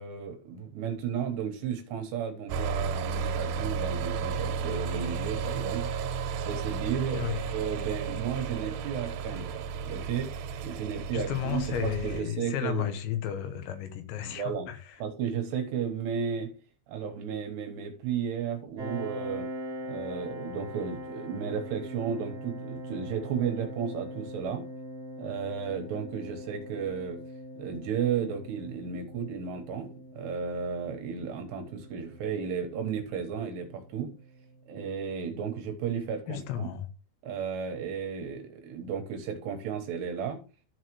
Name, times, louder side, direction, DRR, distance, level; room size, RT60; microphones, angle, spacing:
voice 1, 0.0-5.9 6.4-10.3 10.6-12.8 14.2-14.7 15.0-16.5 16.9-19.5 19.9-24.6 25.2-27.2 27.6-34.1 34.7-36.7 37.2-40.4, right 7 dB, 70° right, 3.1 m, -34 dB
sound 1, 2.5-12.2, right 6 dB, 90° right, 3.3 m, -33 dB
voice 2, 7.1-7.5 11.1-15.0 36.3-36.9, left 9 dB, 80° left, 3.1 m, -33 dB
Piano, 18.8-34.1, equal, 45° right, 1.2 m, -42 dB
13.5 x 4.8 x 3.1 m
omnidirectional pair, 5.4 m